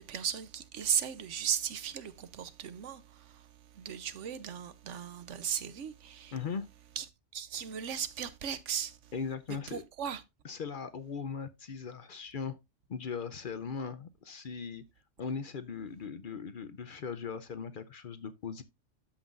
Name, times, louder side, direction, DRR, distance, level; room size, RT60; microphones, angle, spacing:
voice 1, 0.0-3.4 3.8-6.3 7.0-7.1 7.3-9.0 9.7-10.2, right 8 dB, 75° right, 1.1 m, -36 dB
voice 2, 6.3-6.7 9.1-9.8 10.4-12.6 12.9-14.8 15.2-18.6, left 6 dB, 50° left, 0.7 m, -39 dB
13.0 x 5.6 x 2.5 m
omnidirectional pair, 1.2 m